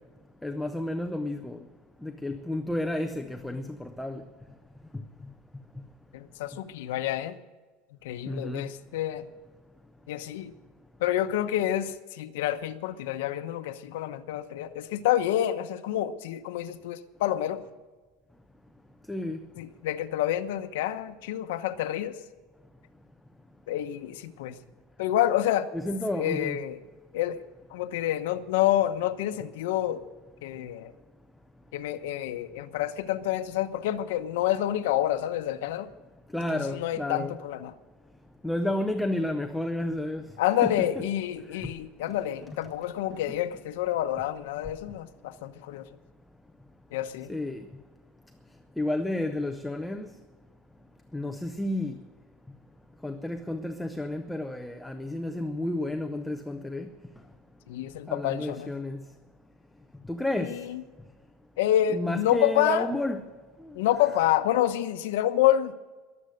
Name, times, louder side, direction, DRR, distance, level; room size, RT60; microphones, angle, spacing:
voice 1, 0.4-1.6 2.0-4.2 8.3-8.7 19.1-19.4 25.7-26.6 36.3-37.4 38.4-40.2 40.6-40.7 47.3-47.6 48.8-50.1 51.1-52.0 53.0-56.9 58.1-59.0 60.1-60.6 61.9-63.2, left 1 dB, 5° left, 0.5 m, -31 dB
voice 2, 6.1-7.4 8.0-9.2 10.1-10.5 11.0-17.6 19.6-22.2 23.7-24.5 25.0-25.7 26.2-26.8 27.1-27.4 27.7-30.0 30.4-30.9 31.7-35.9 36.5-37.7 40.4-45.9 46.9-47.3 57.7-58.7 60.4-60.8 61.6-62.9 63.7-65.7, left 12 dB, 80° left, 0.9 m, -28 dB
22.0 x 7.9 x 6.5 m
cardioid pair, 175°, 0 cm